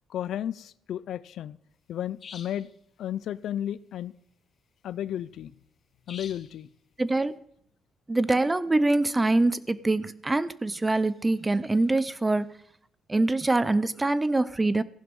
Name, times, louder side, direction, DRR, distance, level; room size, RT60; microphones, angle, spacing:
voice 1, 0.1-1.6 1.9-2.7 3.0-4.1 4.8-5.5 6.1-6.7, left 11 dB, 70° left, 0.5 m, -33 dB
sound 1, 2.2-2.7 6.1-6.6, left 6 dB, 45° left, 1.4 m, -44 dB
voice 2, 7.0-7.4 8.1-12.5 13.1-14.8, right 2 dB, 15° right, 0.7 m, -24 dB
15.0 x 11.0 x 5.4 m
cardioid pair, 105°, 0 cm